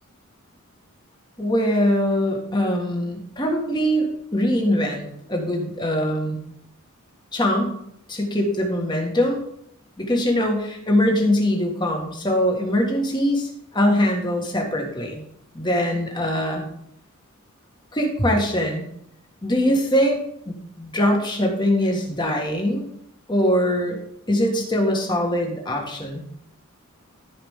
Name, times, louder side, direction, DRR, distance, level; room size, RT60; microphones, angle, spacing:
voice 1, 1.4-4.1 4.3-6.4 7.3-7.7 8.1-9.4 10.0-15.2 15.5-16.7 17.9-18.8 19.4-20.2 20.4-22.8 23.3-24.0 24.3-26.3, equal, 20° left, 1 dB, 1.6 m, -22 dB
14.0 x 5.0 x 3.7 m, 0.73 s
head